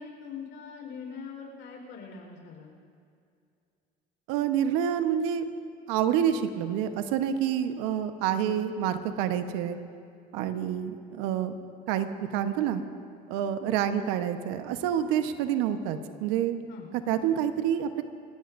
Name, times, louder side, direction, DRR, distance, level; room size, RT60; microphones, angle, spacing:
voice 1, 0.0-2.7 16.7-16.9, left 5 dB, 65° left, 1 dB, 4.3 m, -42 dB
voice 2, 4.3-5.4 5.9-9.8 10.3-11.5 11.9-12.8 13.3-16.6 17.1-18.0, right 9 dB, 80° right, 8 dB, 1.1 m, -28 dB
26.0 x 16.0 x 2.6 m, 2.4 s
supercardioid pair, 75°, 21 cm